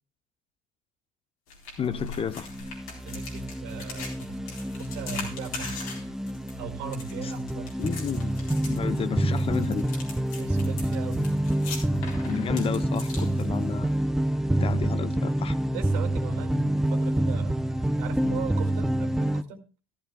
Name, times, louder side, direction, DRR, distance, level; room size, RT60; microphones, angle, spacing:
sound 1, 1.5-13.9, left 4 dB, 85° left, 3.9 m, -41 dB
voice 1, 1.8-2.5 7.2-7.3 7.8-8.3 8.7-9.9 12.2-14.0 14.6-15.6, left 7 dB, 30° left, 0.7 m, -31 dB
sound 2, 2.3-19.4, right 1 dB, 5° right, 0.4 m, -27 dB
voice 2, 3.0-4.4 4.8-5.8 6.6-7.7 10.4-11.2 15.7-17.6 18.0-19.6, right 7 dB, 70° right, 2.1 m, -38 dB
14.0 x 12.5 x 2.3 m
supercardioid pair, 90°, 18 cm